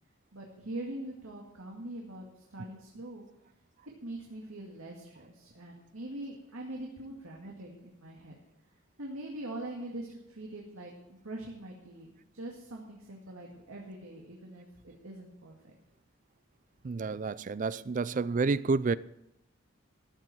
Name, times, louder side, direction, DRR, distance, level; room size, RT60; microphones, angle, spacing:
voice 1, 0.3-3.2 4.0-8.4 9.0-15.7, right 1 dB, 85° right, 2.2 m, -43 dB
voice 2, 16.8-18.9, right 4 dB, 40° right, 0.4 m, -29 dB
14.0 x 7.5 x 7.7 m
head